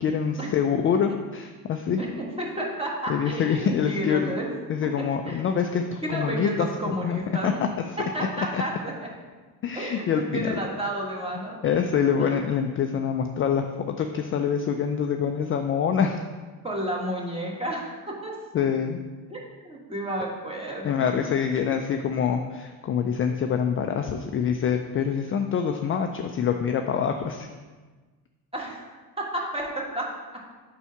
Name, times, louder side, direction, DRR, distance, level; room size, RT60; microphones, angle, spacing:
voice 1, 0.0-2.0 3.1-4.3 4.7-7.5 8.5-8.6 9.6-10.5 11.6-16.2 18.5-19.0 20.8-27.5, left 7 dB, 30° left, 5 dB, 0.4 m, -25 dB
voice 2, 2.0-4.5 5.2-5.4 6.0-7.6 8.1-9.1 9.7-11.6 12.2-12.4 16.6-18.4 18.6-18.7 19.3-21.3 21.6-21.7 28.5-28.9 29.2-30.1 30.3-30.4, right 1 dB, 15° right, -2 dB, 1.5 m, -31 dB
4.7 x 4.2 x 5.8 m, 1.4 s
supercardioid pair, 90°, 42 cm